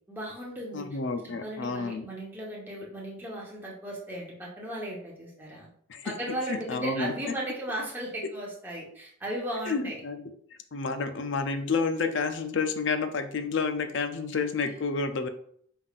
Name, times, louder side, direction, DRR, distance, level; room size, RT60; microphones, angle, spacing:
voice 1, 0.1-0.8 1.2-5.7 6.0-10.0 14.6-14.7, right 1 dB, 10° right, -5 dB, 1.0 m, -36 dB
voice 2, 0.7-2.1 5.9-6.1 6.5-7.1 8.2-8.3 9.7-10.2 10.7-15.3, left 4 dB, 60° left, 8 dB, 0.5 m, -30 dB
5.5 x 3.5 x 2.4 m, 0.64 s
head